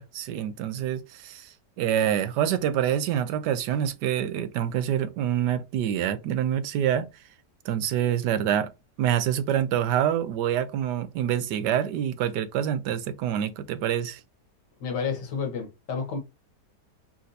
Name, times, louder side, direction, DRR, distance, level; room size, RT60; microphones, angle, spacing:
voice 1, 0.0-1.5 1.8-7.1 7.6-8.7 9.0-14.2, right 10 dB, 75° right, 1.2 m, -26 dB
voice 2, 14.8-16.2, left 5 dB, 70° left, 1.7 m, -30 dB
4.3 x 2.6 x 4.0 m
omnidirectional pair, 1.9 m